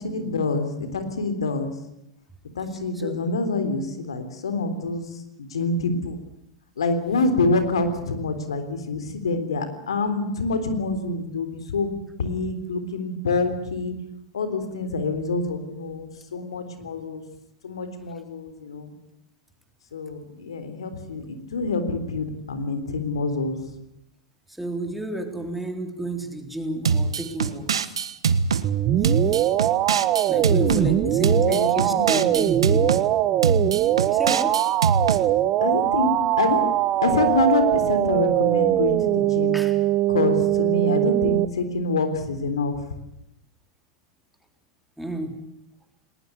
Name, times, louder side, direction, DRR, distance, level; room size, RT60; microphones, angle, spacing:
voice 1, 0.0-1.7 2.6-6.2 6.8-13.9 14.3-17.2 17.6-18.9 19.9-23.7 30.7-32.3 32.7-33.0 35.6-36.1 36.4-36.7 37.0-39.6 40.1-42.8, left 3 dB, 85° left, 9 dB, 3.7 m, -26 dB
voice 2, 24.5-28.0 30.3-32.9 34.0-34.6 39.5-39.8 45.0-45.5, right 1 dB, 5° right, 5 dB, 3.7 m, -31 dB
sound 1, 26.8-28.7 29.0-30.8 31.2-33.0 33.4-35.2, right 5 dB, 85° right, 1.3 m, -23 dB
sound 2, 28.6-41.5, right 13 dB, 40° right, 1.4 m, -21 dB
20.0 x 19.5 x 9.7 m, 0.82 s
hypercardioid pair, 100°, 3 cm